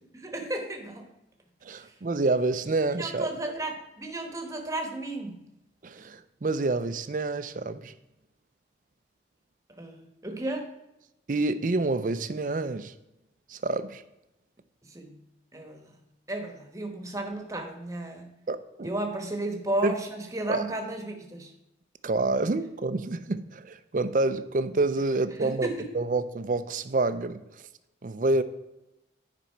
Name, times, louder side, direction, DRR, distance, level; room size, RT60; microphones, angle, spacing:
voice 1, 0.1-1.1 1.8-1.9 3.0-5.4 9.8-10.7 14.9-15.2 15.5-15.9 16.3-18.3 18.8-21.5 25.3-25.9, right 1 dB, 20° right, 4 dB, 1.1 m, -34 dB
voice 2, 1.6-3.3 5.8-7.9 11.3-12.9 13.5-14.0 18.5-18.9 19.8-19.9 20.5-20.6 22.0-25.7 25.9-27.4 28.0-28.4, right 2 dB, 45° right, 12 dB, 0.5 m, -28 dB
10.0 x 5.2 x 4.5 m, 0.92 s
head